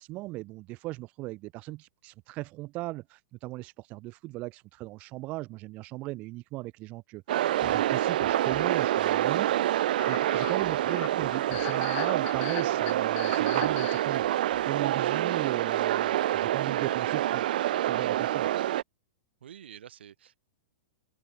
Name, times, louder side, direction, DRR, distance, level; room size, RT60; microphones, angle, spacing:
voice 1, 0.0-9.7 10.1-14.4 14.6-17.5 17.8-18.5, right 20 dB, 25° right, 0.9 m, -38 dB
sound 1, 7.3-15.1, left 28 dB, 25° left, 0.7 m, -42 dB
sound 2, 7.3-18.8, right 13 dB, 55° right, 0.5 m, -27 dB
voice 2, 19.4-20.4, right 9 dB, 85° right, 3.8 m, -49 dB
open air
supercardioid pair, 175°, 6 cm